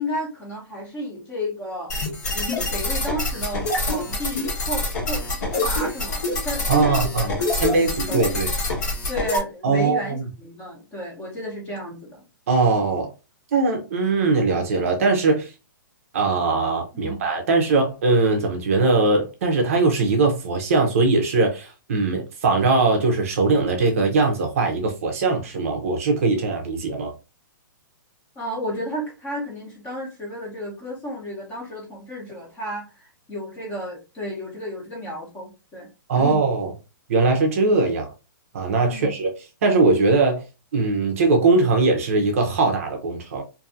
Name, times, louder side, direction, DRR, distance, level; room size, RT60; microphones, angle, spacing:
voice 1, 0.0-1.9 2.3-8.4 9.1-12.2 16.9-17.3 28.3-35.9 36.1-36.4 38.9-39.2, equal, 15° left, 0.8 m, -32 dB
sound 1, 1.9-9.4, left 2 dB, 50° left, 1.1 m, -26 dB
voice 2, 6.7-7.3 7.6-8.5 9.6-10.2 12.5-13.1 13.5-15.5 16.1-27.1 36.1-36.7 37.1-38.1 38.5-39.3 39.6-40.4 40.7-43.4, right 3 dB, 40° right, 0.6 m, -20 dB
2.6 x 2.6 x 2.5 m
hypercardioid pair, 170°, 11 cm